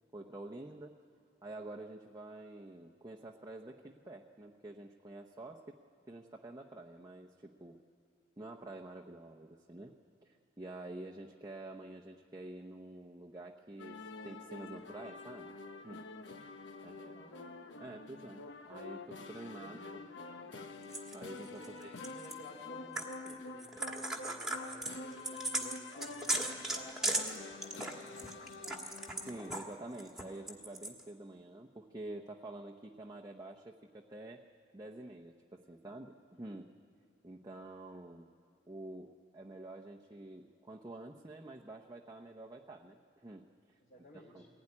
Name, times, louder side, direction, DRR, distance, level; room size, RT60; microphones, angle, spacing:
voice 1, 0.1-0.9 1.4-5.8 6.1-7.8 8.4-9.9 10.2-15.5 15.8-16.1 16.8-17.1 17.8-20.0 21.1-22.0 29.2-34.4 34.7-36.7 37.2-38.3 38.7-43.8 44.3-44.4, right 2 dB, 20° right, 0 dB, 0.8 m, -48 dB
sound 1, 13.8-29.6, left 3 dB, 70° left, 1.1 m, -47 dB
voice 2, 16.7-17.4 19.6-20.1 21.5-28.9 43.8-44.5, equal, 45° left, -4 dB, 3.1 m, -56 dB
sound 2, 20.9-22.3 23.0-23.3 23.6-29.7 30.0-31.0, right 2 dB, ahead, 1.7 m, -37 dB
22.0 x 16.5 x 9.8 m, 2.2 s
head